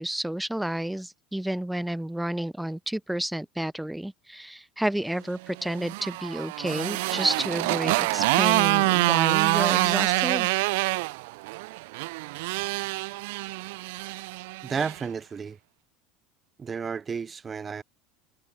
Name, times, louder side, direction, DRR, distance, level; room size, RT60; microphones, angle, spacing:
voice 1, 0.0-10.5, right 1 dB, 5° right, 5.2 m, -30 dB
Motorcycle, 5.6-15.0, right 24 dB, 75° right, 3.4 m, -26 dB
voice 2, 14.6-15.6 16.6-17.8, right 6 dB, 25° right, 5.0 m, -32 dB
supercardioid pair, 105°, 0 cm